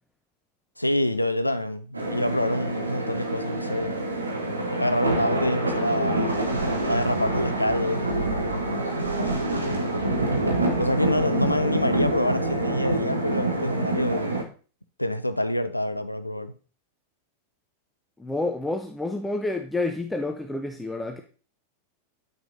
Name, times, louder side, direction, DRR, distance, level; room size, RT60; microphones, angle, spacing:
voice 1, 0.8-3.9 4.8-6.5 6.8-8.6 10.8-14.3 15.0-16.5, left 1 dB, 85° left, 0.5 m, -26 dB
sound 1, 1.9-14.4, right 2 dB, 80° right, 1.0 m, -26 dB
voice 2, 18.2-21.2, left 2 dB, 5° left, 0.7 m, -29 dB
9.2 x 6.1 x 2.7 m
figure-of-eight pair, 90°, 0 cm